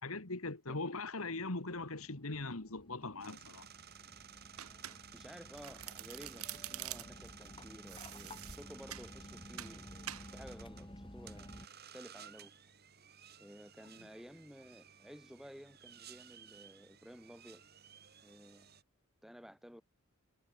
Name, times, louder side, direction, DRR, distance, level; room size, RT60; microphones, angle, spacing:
voice 1, 0.0-3.7, left 3 dB, 80° left, 2.3 m, -40 dB
sound 1, 1.0-1.1 1.3-11.7, left 1 dB, 20° left, 2.9 m, -54 dB
sound 2, 3.2-18.8, right 8 dB, 45° right, 6.7 m, -56 dB
Domestic sounds home sounds, 4.6-5.3 5.6-7.3 7.9-9.1 9.6-9.8 10.1-10.3, right 13 dB, 85° right, 1.3 m, -46 dB
voice 2, 4.8-9.9 10.3-11.5 11.9-12.5 13.4-17.6 18.2-18.7 19.2-19.8, equal, ahead, 6.8 m, -54 dB
head